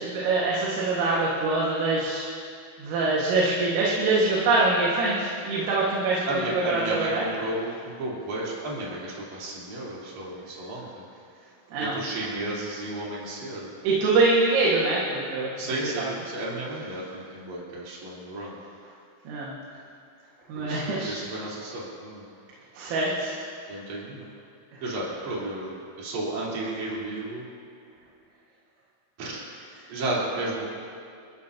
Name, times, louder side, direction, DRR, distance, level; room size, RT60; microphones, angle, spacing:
voice 1, 0.0-2.3 2.8-7.2 11.7-12.2 13.8-15.5 16.0-16.1 19.3-19.5 20.5-21.2 22.7-23.3, right 3 dB, 90° right, -5 dB, 4.5 m, -24 dB
voice 2, 6.3-10.9 11.8-13.7 15.6-18.6 20.6-22.2 23.7-24.3 24.8-27.4 29.2-29.4 29.9-30.7, right 2 dB, 40° right, -7 dB, 4.7 m, -33 dB
28.0 x 15.0 x 2.9 m, 2.3 s
omnidirectional pair, 5.7 m